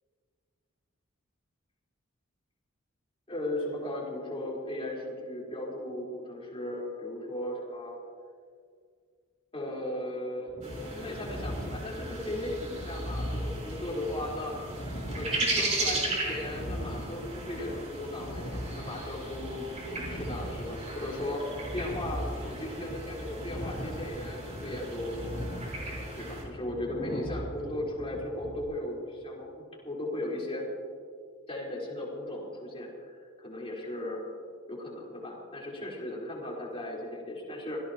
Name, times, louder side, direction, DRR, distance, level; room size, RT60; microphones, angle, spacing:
voice 1, 3.3-7.9 9.5-14.5 15.2-21.4 21.7-25.1 25.8-30.7 31.5-34.2 34.7-37.8, left 1 dB, 30° left, -4 dB, 4.0 m, -37 dB
sound 1, 10.5-28.6, equal, 50° left, 2.7 m, -39 dB
sound 2, 10.6-26.4, right 2 dB, 35° right, 4.3 m, -37 dB
26.0 x 16.5 x 2.9 m, 2.1 s
head